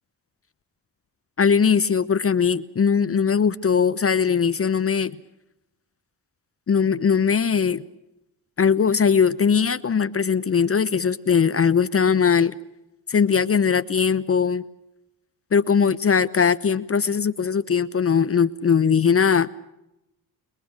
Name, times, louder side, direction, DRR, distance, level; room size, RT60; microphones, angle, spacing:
voice 1, 1.4-5.2 6.7-7.8 8.6-12.5 13.1-14.6 15.5-19.5, left 6 dB, 30° left, 13 dB, 0.9 m, -20 dB
28.5 x 22.0 x 6.1 m, 0.87 s
figure-of-eight pair, 45°, 46 cm